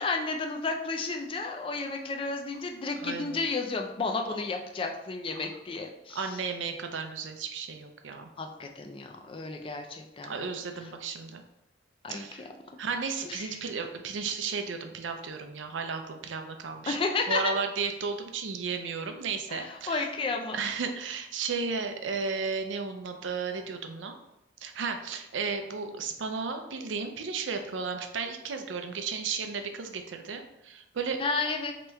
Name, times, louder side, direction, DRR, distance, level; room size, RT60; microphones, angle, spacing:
voice 1, 0.0-6.3 8.4-10.3 12.0-12.2 13.2-13.6 16.9-17.5 19.5-20.6 31.2-31.7, left 3 dB, 30° left, 3 dB, 0.4 m, -32 dB
voice 2, 3.0-3.4 6.1-8.3 10.2-11.4 12.1-12.5 12.8-17.0 17.3-20.1 20.5-24.2 24.6-31.2, right 5 dB, 85° right, 6 dB, 0.5 m, -34 dB
3.2 x 2.9 x 3.4 m, 0.89 s
head